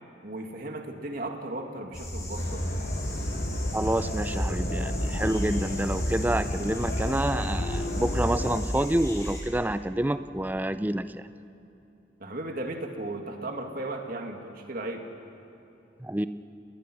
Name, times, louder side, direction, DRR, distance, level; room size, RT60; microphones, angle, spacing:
voice 1, 0.2-2.7 12.2-15.1, right 2 dB, 50° right, 3 dB, 2.2 m, -36 dB
sound 1, 1.9-9.4, equal, 15° left, 4.6 m, -34 dB
sound 2, 2.4-8.6, left 1 dB, 50° left, 1.7 m, -32 dB
voice 2, 3.7-11.2 16.0-16.3, right 1 dB, 10° right, 12 dB, 0.5 m, -28 dB
29.0 x 21.0 x 6.1 m, 2.8 s
head